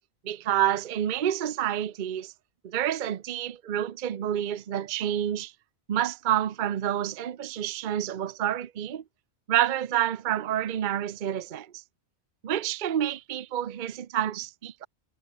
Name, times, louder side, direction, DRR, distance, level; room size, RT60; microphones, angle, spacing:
voice 1, 0.2-2.3 2.6-5.5 5.9-9.0 9.5-11.8 12.4-14.9, right 11 dB, 50° right, 0.8 m, -28 dB
omnidirectional pair, 1.2 m